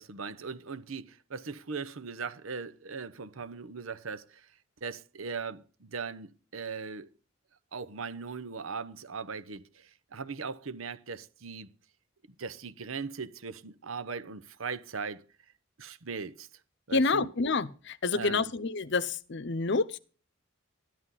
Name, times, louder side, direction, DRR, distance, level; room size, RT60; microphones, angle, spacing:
voice 1, 0.0-4.5 4.8-7.1 7.7-11.7 12.4-15.2 15.8-16.5 16.9-17.3 18.1-18.5, right 5 dB, 80° right, 0.9 m, -39 dB
voice 2, 16.9-20.0, left 3 dB, 60° left, 0.7 m, -28 dB
13.0 x 11.5 x 4.1 m
head